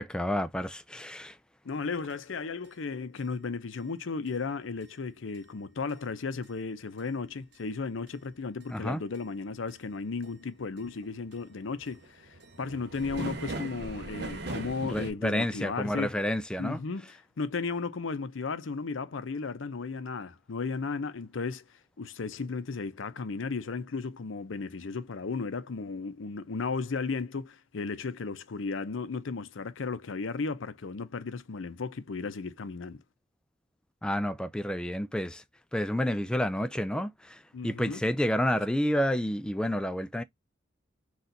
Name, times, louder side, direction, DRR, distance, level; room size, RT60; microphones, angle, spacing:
voice 1, 0.0-1.4 8.7-9.0 14.9-16.8 34.0-35.4 35.7-40.2, equal, 5° left, 0.3 m, -30 dB
voice 2, 1.6-16.2 16.6-21.6 22.0-33.0 37.5-38.0, left 4 dB, 80° left, 0.6 m, -35 dB
sound 1, 2.1-2.2 2.6-2.7 3.2-3.3 3.7-3.8 4.3-4.4 4.8-4.9 5.3-5.4 5.9-6.0 6.4-6.5 7.0-7.1 7.5-7.6 8.1-8.2 8.6-8.7 9.1-9.2 9.7-10.0 10.2-10.3 10.6-15.1, right 2 dB, 55° right, 0.8 m, -40 dB
4.3 x 2.4 x 3.8 m
head